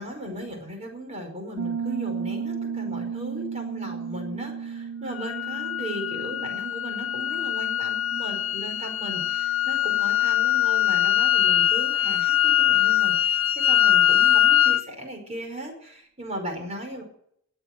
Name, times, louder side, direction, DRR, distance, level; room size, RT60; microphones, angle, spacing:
voice 1, 0.0-17.0, equal, 30° right, 3 dB, 5.3 m, -37 dB
Piano, 1.6-10.1, right 6 dB, 60° right, 0.7 m, -35 dB
sound 1, 5.2-14.8, left 11 dB, 60° left, 0.8 m, -22 dB
19.5 x 8.9 x 7.9 m, 0.70 s
head